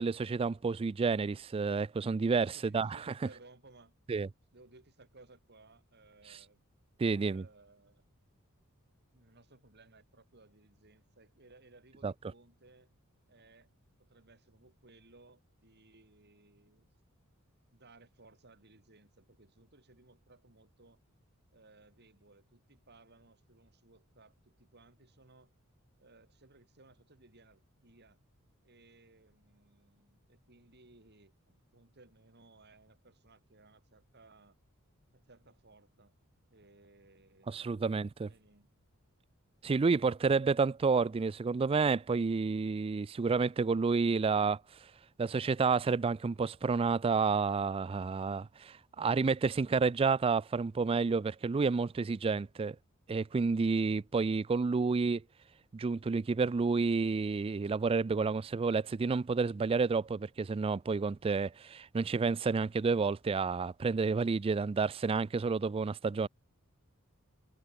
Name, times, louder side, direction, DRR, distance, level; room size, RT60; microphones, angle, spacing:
voice 1, 0.0-3.0 4.1-4.3 7.0-7.4 12.0-12.1 37.5-38.3 39.6-44.6 45.2-52.8 53.1-55.2 55.7-66.3, right 4 dB, 25° right, 0.3 m, -30 dB
voice 2, 2.5-3.9 4.5-6.6 7.0-8.0 9.1-12.9 13.3-13.7 14.0-16.9 17.7-21.0 21.5-25.5 26.0-28.2 28.6-34.6 35.1-36.1 36.5-37.8 38.3-38.7, right 2 dB, 50° right, 5.3 m, -61 dB
head